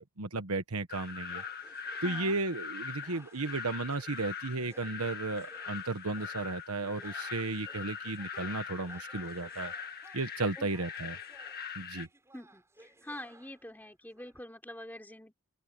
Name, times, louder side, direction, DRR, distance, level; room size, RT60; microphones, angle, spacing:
voice 1, 0.0-1.4 2.0-9.7 10.1-11.2 11.8-12.1, right 3 dB, 85° right, 1.3 m, -34 dB
sound 1, 0.9-12.1, left 6 dB, 45° left, 2.1 m, -42 dB
sound 2, 1.3-14.4, right 2 dB, 10° right, 5.7 m, -60 dB
voice 2, 1.9-2.4 10.6-10.7 12.3-15.3, left 1 dB, 10° left, 3.5 m, -46 dB
open air
head